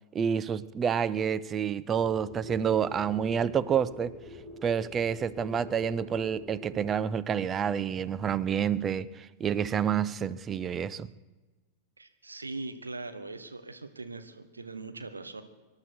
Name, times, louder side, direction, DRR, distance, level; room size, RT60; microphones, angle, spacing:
voice 1, 0.1-4.1 4.6-11.1, right 8 dB, 25° right, 0.6 m, -28 dB
sound 1, 1.9-6.9, left 2 dB, 10° left, 4.9 m, -45 dB
voice 2, 12.0-15.4, right 3 dB, 80° right, 1.2 m, -41 dB
25.5 x 11.5 x 4.6 m
figure-of-eight pair, 90°, 0 cm